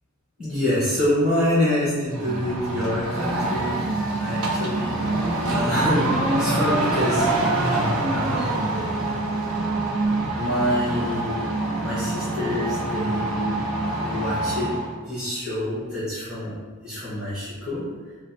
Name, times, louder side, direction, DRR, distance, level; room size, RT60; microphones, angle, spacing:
voice 1, 0.4-3.8 4.2-4.9 5.4-7.3 8.1-8.8 10.4-11.5 11.8-13.7 14.0-14.8 15.0-16.5 16.8-17.8, left 1 dB, 5° right, -13 dB, 1.2 m, -26 dB
sound 1, 2.1-14.9, right 2 dB, 75° right, 0.7 m, -25 dB
4.2 x 2.0 x 4.2 m, 1.5 s
head